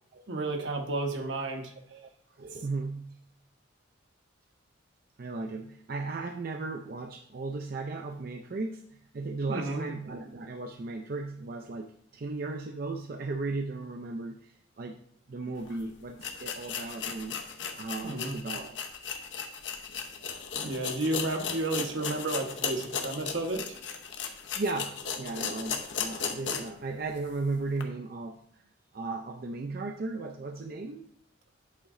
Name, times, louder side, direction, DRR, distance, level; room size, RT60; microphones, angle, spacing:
voice 1, 0.3-1.7 9.5-9.9 18.0-18.4 20.6-23.8, right 2 dB, 75° right, 4 dB, 1.1 m, -32 dB
voice 2, 1.9-3.2 5.2-15.0 15.3-18.9 24.5-28.6 28.9-31.0, right 3 dB, 50° right, 4 dB, 0.4 m, -36 dB
sound 1, 15.7-15.8 16.2-26.8 27.2-27.3 27.8-27.9, left 6 dB, 70° left, 0.9 m, -36 dB
8.4 x 5.2 x 3.7 m, 0.65 s
head